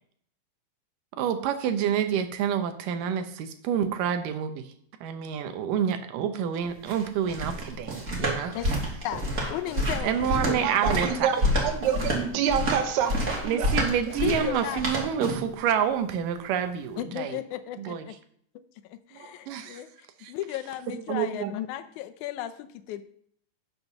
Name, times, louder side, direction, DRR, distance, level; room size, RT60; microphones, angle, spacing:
voice 1, 1.1-4.7 5.0-8.5 10.0-11.3 13.4-17.4 17.8-18.0 19.5-19.8 20.2-20.3, right 8 dB, 85° right, 8 dB, 2.5 m, -28 dB
sound 1, 6.6-15.5, equal, 30° right, 2.3 m, -28 dB
voice 2, 9.5-10.7 14.2-14.9 17.0-18.0 18.9-23.0, left 12 dB, 75° left, 10 dB, 2.0 m, -35 dB
voice 3, 10.5-11.4 11.6-13.7 19.2-19.6 21.1-21.5, right 8 dB, 70° right, 6 dB, 2.2 m, -28 dB
8.7 x 6.7 x 5.9 m, 0.63 s
omnidirectional pair, 3.7 m